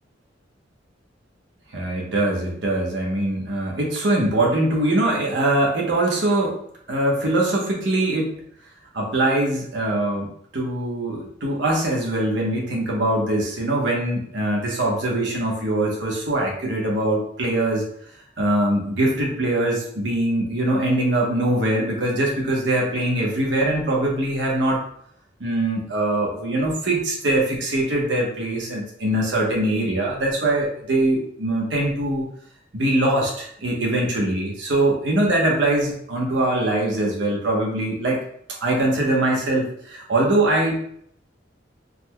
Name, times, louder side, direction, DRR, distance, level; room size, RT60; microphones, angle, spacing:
voice 1, 1.7-6.6 6.9-8.4 8.9-10.3 10.5-17.8 18.4-24.8 25.4-32.3 32.7-38.2 38.6-40.8, right 1 dB, 70° right, -2 dB, 1.0 m, -22 dB
3.9 x 3.0 x 2.2 m, 0.67 s
head